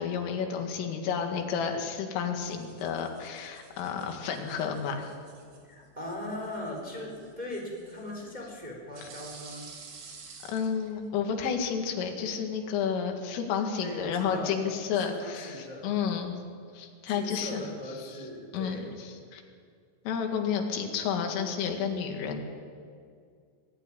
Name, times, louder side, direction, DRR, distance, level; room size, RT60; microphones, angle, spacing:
voice 1, 0.0-5.2 10.5-16.3 16.7-17.6 18.5-19.4 20.1-22.4, left 7 dB, 85° left, 4 dB, 4.5 m, -31 dB
sound 1, 2.4-11.6, right 4 dB, 55° right, 4.4 m, -52 dB
voice 2, 5.6-9.7 13.8-14.6 15.1-15.9 17.1-18.9, left 1 dB, 10° right, 0 dB, 3.3 m, -39 dB
23.5 x 14.0 x 10.0 m, 2.2 s
omnidirectional pair, 5.7 m